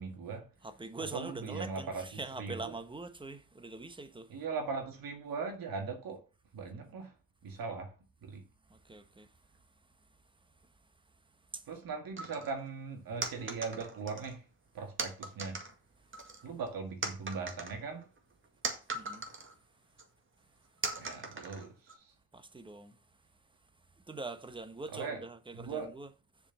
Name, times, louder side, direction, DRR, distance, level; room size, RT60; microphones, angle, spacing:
voice 1, 0.0-0.5 1.0-2.7 4.3-6.2 6.5-7.2 7.4-7.9 8.2-8.4 11.7-14.5 14.7-15.6 16.4-18.1 21.0-22.1 24.9-25.2 25.5-25.9, right 4 dB, 80° right, 1.9 m, -40 dB
voice 2, 0.6-4.3 8.7-9.3 11.5-11.6 18.9-19.3 22.3-23.0 24.1-26.1, right 3 dB, 15° right, 1.1 m, -43 dB
sound 1, 12.2-12.5 13.2-14.4 15.0-15.7 16.1-16.7 17.0-19.5 20.0-20.1 20.8-21.9, right 3 dB, 35° right, 1.9 m, -39 dB
7.1 x 5.0 x 6.9 m
cardioid pair, 120°, 34 cm